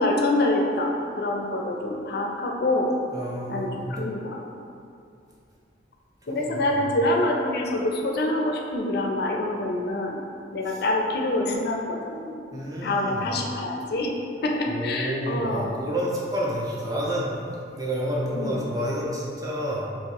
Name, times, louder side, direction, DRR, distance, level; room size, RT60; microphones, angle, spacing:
voice 1, 0.0-2.9 3.5-4.4 6.3-10.2 10.5-12.4 12.8-14.1 14.4-15.8 18.3-18.7, left 1 dB, 60° left, 0 dB, 0.4 m, -26 dB
voice 2, 3.1-3.8 6.3-6.8 10.7-10.8 12.5-13.2 14.7-19.8, equal, 20° right, -5 dB, 0.6 m, -29 dB
2.9 x 2.8 x 4.5 m, 2.5 s
head